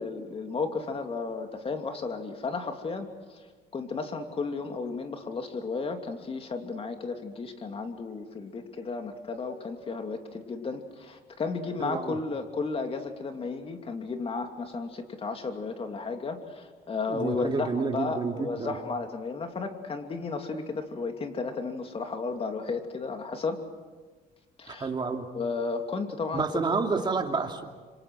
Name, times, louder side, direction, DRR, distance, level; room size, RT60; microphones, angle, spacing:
voice 1, 0.0-3.4 3.7-23.6 24.6-24.9 25.3-26.7, left 4 dB, 35° left, 5 dB, 2.8 m, -33 dB
voice 2, 11.8-12.2 17.1-18.7 24.7-25.3 26.3-27.7, right 4 dB, 25° right, 3 dB, 2.8 m, -29 dB
27.0 x 25.0 x 6.3 m, 1.4 s
cardioid pair, 110°, 17 cm